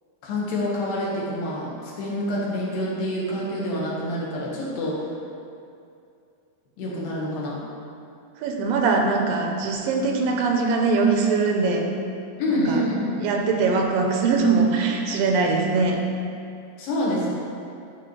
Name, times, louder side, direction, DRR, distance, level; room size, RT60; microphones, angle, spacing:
voice 1, 0.2-5.1 6.8-7.6 12.4-13.1 16.8-17.3, left 1 dB, 85° left, -5 dB, 3.1 m, -27 dB
voice 2, 8.4-11.8 12.5-12.8 13.2-16.0, right 4 dB, 90° right, 2 dB, 2.4 m, -22 dB
11.0 x 4.9 x 3.1 m, 2.5 s
omnidirectional pair, 4.0 m